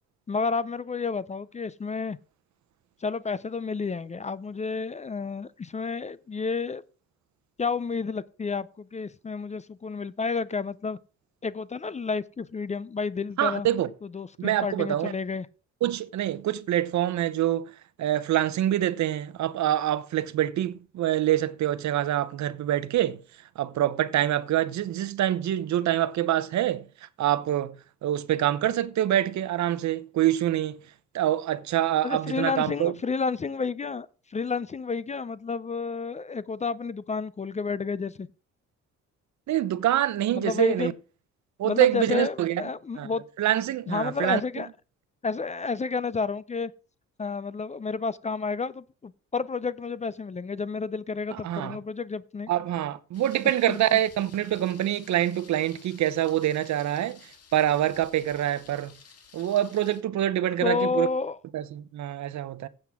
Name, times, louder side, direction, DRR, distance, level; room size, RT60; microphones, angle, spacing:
voice 1, 0.3-2.2 3.0-6.8 7.6-11.0 11.4-13.7 14.0-15.5 32.0-38.3 40.3-40.9 41.6-43.2 43.9-44.7 45.2-46.7 47.2-52.5 53.7-54.0 60.6-61.4, left 4 dB, 25° left, 0.5 m, -30 dB
voice 2, 13.4-13.9 14.4-15.1 15.8-17.7 18.0-23.2 23.6-26.8 27.2-27.7 28.0-30.8 31.1-32.9 39.5-40.9 41.6-42.6 43.0-43.1 43.4-44.4 51.3-51.8 52.5-57.2 57.5-58.9 59.3-61.1 61.5-62.7, right 12 dB, 65° right, 0.8 m, -25 dB
Thunder, 53.1-60.0, left 6 dB, 55° left, 1.9 m, -53 dB
15.5 x 7.8 x 3.6 m
cardioid pair, 90°, 30 cm